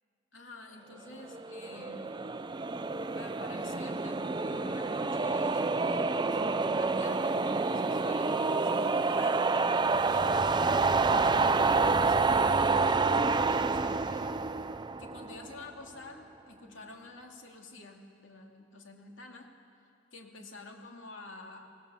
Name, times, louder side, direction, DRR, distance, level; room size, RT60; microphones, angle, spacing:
voice 1, 0.3-2.1 3.2-9.5 10.0-14.4 15.0-19.5 20.1-21.7, left 2 dB, 80° left, 2 dB, 2.7 m, -49 dB
sound 1, 1.3-15.6, right 4 dB, 25° right, 0.5 m, -28 dB
25.0 x 19.5 x 7.2 m, 2.4 s
head